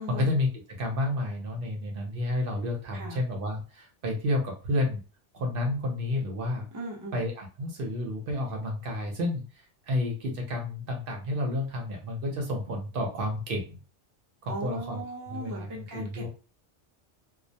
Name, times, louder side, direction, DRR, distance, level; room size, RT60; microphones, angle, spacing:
voice 1, 0.0-5.0 5.3-6.7 7.1-9.4 9.9-13.8 14.4-16.3, left 1 dB, 55° right, 1 dB, 0.7 m, -30 dB
voice 2, 6.7-7.2 14.5-16.3, right 1 dB, 30° right, -1 dB, 0.3 m, -38 dB
2.2 x 2.0 x 2.7 m, 0.34 s
omnidirectional pair, 1.2 m